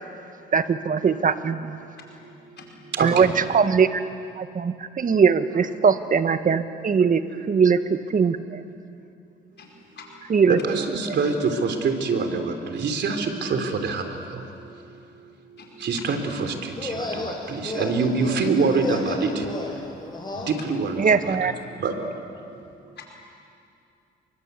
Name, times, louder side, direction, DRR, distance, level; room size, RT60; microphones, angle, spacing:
voice 1, 0.5-1.8 3.0-4.0 4.4-7.2 7.5-8.6 10.3-10.6 11.1-11.2 21.0-21.5, right 6 dB, 40° right, 10 dB, 1.4 m, -21 dB
voice 2, 9.6-10.2 15.6-15.8 20.3-20.7 23.0-23.1, left 6 dB, 60° left, 1 dB, 5.2 m, -46 dB
voice 3, 10.5-14.0 15.8-19.5 20.5-21.0 21.3-21.4 21.8-21.9, right 4 dB, 60° right, 5 dB, 3.5 m, -25 dB
sound 1, 16.7-20.5, left 2 dB, 20° left, 6.4 m, -32 dB
28.5 x 23.5 x 8.3 m, 2.5 s
cardioid pair, 90°, 20 cm